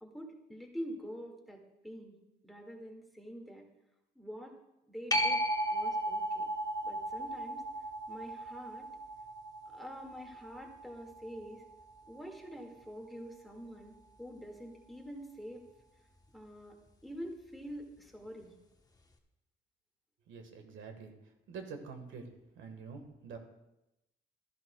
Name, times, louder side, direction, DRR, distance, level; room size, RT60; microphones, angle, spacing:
voice 1, 0.0-2.1 2.4-3.7 4.2-4.6 4.9-5.4 5.7-6.5 6.8-7.6 8.1-8.9 9.7-11.6 12.1-15.6 16.3-18.5, equal, ahead, 1 dB, 1.9 m, -46 dB
sound 1, 5.1-12.3 17.8-17.9, right 1 dB, 20° left, 1.0 m, -36 dB
voice 2, 20.3-21.1 21.5-22.3 22.5-23.4, right 5 dB, 75° right, 6 dB, 1.5 m, -46 dB
14.0 x 11.0 x 2.3 m, 0.92 s
cardioid pair, 90°, 20 cm